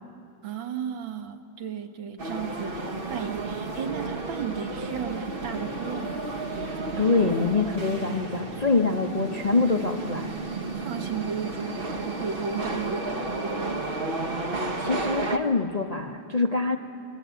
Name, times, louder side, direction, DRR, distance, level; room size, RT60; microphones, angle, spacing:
voice 1, 0.4-6.2 10.7-13.7, right 7 dB, 90° right, 6 dB, 2.1 m, -34 dB
sound 1, 2.2-15.4, right 2 dB, 35° right, 1.1 m, -32 dB
voice 2, 6.7-10.3 14.5-16.8, left 3 dB, 40° left, 3 dB, 0.5 m, -25 dB
28.0 x 21.5 x 8.3 m, 2.8 s
omnidirectional pair, 2.1 m